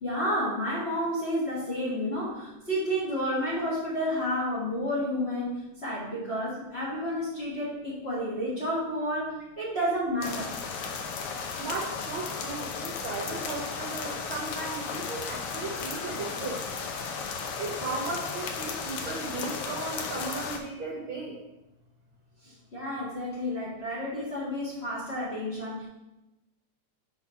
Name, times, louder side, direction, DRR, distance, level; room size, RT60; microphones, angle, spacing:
voice 1, 0.0-10.5 22.4-25.9, equal, 30° left, -7 dB, 1.4 m, -31 dB
sound 1, 10.2-20.6, left 5 dB, 75° left, 1.4 m, -35 dB
voice 2, 11.6-16.6 17.6-21.4, right 3 dB, 75° right, -1 dB, 1.2 m, -36 dB
5.8 x 4.0 x 5.5 m, 0.98 s
omnidirectional pair, 3.3 m